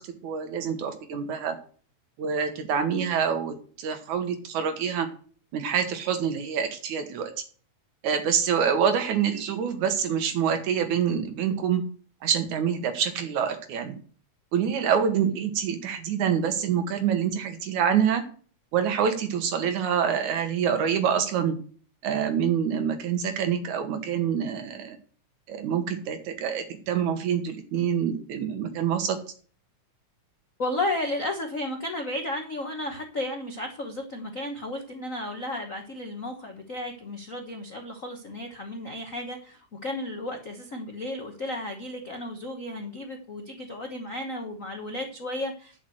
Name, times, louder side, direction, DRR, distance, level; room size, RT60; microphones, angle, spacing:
voice 1, 0.2-1.6 2.2-5.1 5.5-7.3 8.0-11.8 12.2-13.9 14.5-18.2 18.7-21.5 22.0-25.0 25.5-29.2, right 7 dB, 75° right, 8 dB, 2.8 m, -26 dB
voice 2, 30.6-45.9, left 1 dB, 55° left, 3 dB, 0.8 m, -33 dB
10.5 x 6.1 x 7.8 m, 0.43 s
omnidirectional pair, 3.4 m